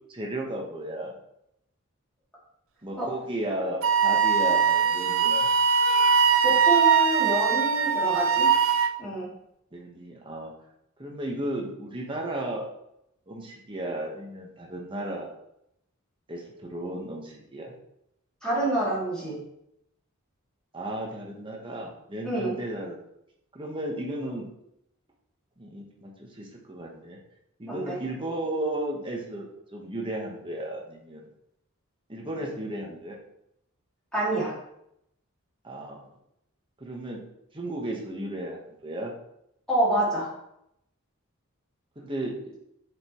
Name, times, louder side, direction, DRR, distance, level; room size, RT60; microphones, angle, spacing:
voice 1, 0.1-1.1 2.8-5.5 9.7-10.5 11.0-12.7 13.3-15.3 16.3-17.7 20.7-23.0 23.5-24.5 25.6-27.2 27.6-31.2 32.1-33.2 35.6-36.1 36.8-37.2 37.5-39.1 42.0-42.3, right 1 dB, 25° right, -1 dB, 1.3 m, -34 dB
Wind instrument woodwind instrument, 3.8-8.9, right 6 dB, 65° right, 0.4 m, -21 dB
voice 2, 6.4-8.5 9.0-9.3 18.4-19.4 22.2-22.6 27.6-28.0 34.1-34.5 39.7-40.3, right 1 dB, 5° left, -8 dB, 2.8 m, -27 dB
7.4 x 5.2 x 3.1 m, 0.79 s
head